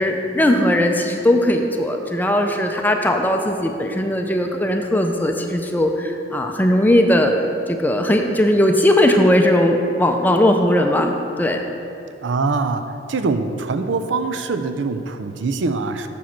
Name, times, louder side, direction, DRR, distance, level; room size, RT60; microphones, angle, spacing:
voice 1, 0.0-7.3 7.7-11.6, left 1 dB, 10° left, 4 dB, 0.4 m, -18 dB
voice 2, 12.2-12.8 13.1-16.1, right 3 dB, 85° right, 8 dB, 0.5 m, -23 dB
7.0 x 5.1 x 5.8 m, 2.6 s
head